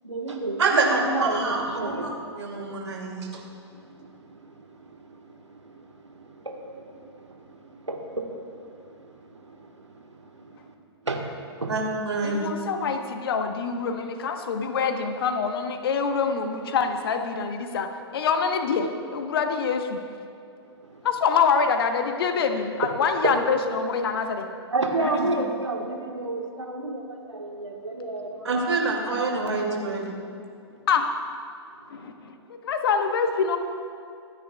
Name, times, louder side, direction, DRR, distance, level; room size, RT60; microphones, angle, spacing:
voice 1, 0.0-2.1 2.5-2.6 3.7-10.7 11.0-11.7 20.8-21.1 24.7-28.5, right 2 dB, 85° right, 2 dB, 1.6 m, -32 dB
voice 2, 0.6-2.1 2.4-3.4 11.7-12.4 25.1-25.3 28.4-30.2, right 3 dB, 70° right, 0 dB, 2.7 m, -26 dB
voice 3, 12.2-20.0 21.0-24.5 25.0-25.1 30.9-31.1 31.9-33.6, left 5 dB, 55° left, 6 dB, 1.2 m, -25 dB
25.5 x 9.7 x 2.4 m, 2.5 s
figure-of-eight pair, 115°, 15 cm